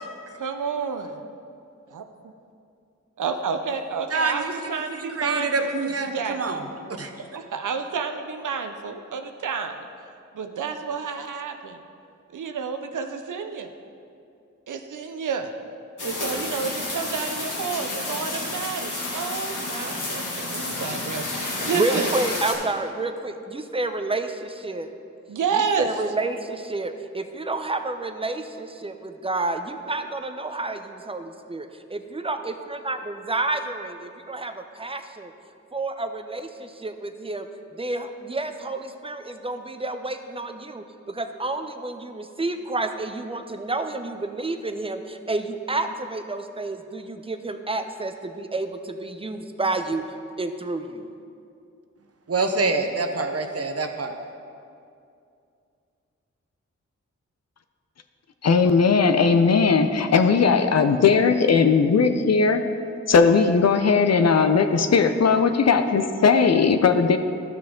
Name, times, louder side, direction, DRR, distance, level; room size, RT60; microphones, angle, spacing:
voice 1, 0.3-1.2 1.9-2.0 3.2-6.6 7.3-9.9 10.3-11.8 12.3-13.7 14.7-15.5 16.0-22.1 25.3-25.9, right 6 dB, 80° right, 6 dB, 0.6 m, -30 dB
voice 2, 4.1-6.6 7.0-7.1 52.3-54.1, right 3 dB, 50° right, 5 dB, 0.9 m, -26 dB
sound 1, 16.0-22.5, left 2 dB, 80° left, 1.8 m, -30 dB
voice 3, 21.7-24.9 25.8-35.3 35.7-37.5 37.7-50.0 50.4-51.1, right 2 dB, 20° right, 7 dB, 0.7 m, -30 dB
voice 4, 58.4-62.6 63.1-67.2, left 5 dB, 55° left, 8 dB, 0.6 m, -18 dB
12.5 x 6.1 x 3.7 m, 2.5 s
cardioid pair, 45°, 31 cm